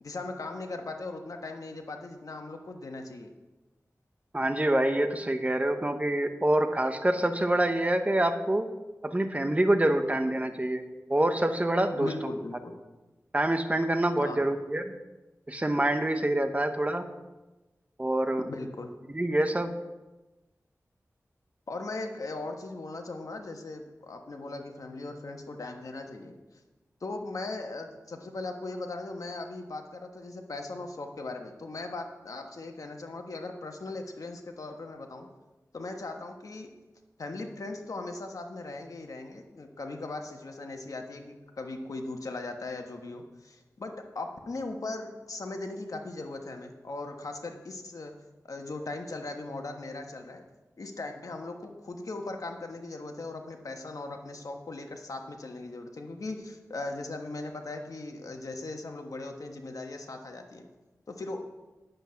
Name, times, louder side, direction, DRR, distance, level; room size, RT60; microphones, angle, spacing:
voice 1, 0.0-3.3 11.9-12.7 14.2-14.5 18.4-18.9 21.7-26.4 27.0-35.3 35.7-36.7 37.2-48.1 48.4-50.4 50.8-60.7 61.1-61.4, left 2 dB, 75° left, 4 dB, 1.3 m, -39 dB
voice 2, 4.3-8.7 9.0-10.8 11.1-12.1 13.3-14.9 15.5-17.1 18.0-18.4 19.1-19.8, right 1 dB, 25° right, 8 dB, 0.9 m, -26 dB
10.5 x 8.0 x 5.8 m, 1.1 s
wide cardioid pair, 75°, 6 cm